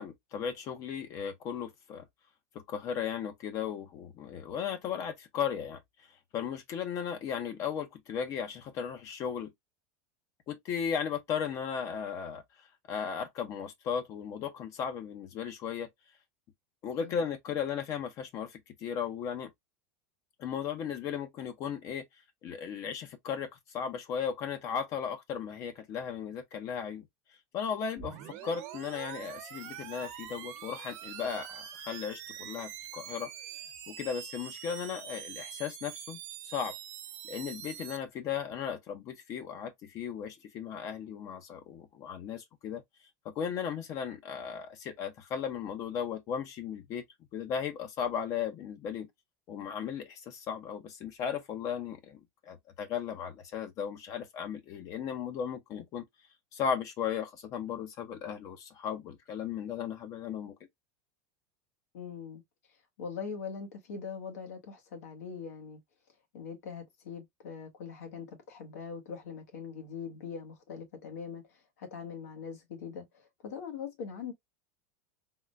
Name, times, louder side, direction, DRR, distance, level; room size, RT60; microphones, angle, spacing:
voice 1, 0.0-2.0 2.7-5.8 6.3-9.5 10.5-12.4 12.9-15.9 16.8-19.5 20.4-22.0 22.4-23.5 23.7-27.0 27.5-33.3 33.9-36.7 37.2-42.8 43.2-47.0 47.3-49.1 49.5-52.2 52.5-56.0 56.5-60.5, left 7 dB, 40° left, 0.6 m, -36 dB
sound 1, 28.0-38.0, right 10 dB, 55° right, 1.0 m, -44 dB
voice 2, 61.9-62.4 63.0-65.8 66.3-71.4 71.8-74.3, left 6 dB, 85° left, 1.3 m, -42 dB
3.6 x 2.2 x 2.5 m
supercardioid pair, 135°, 8 cm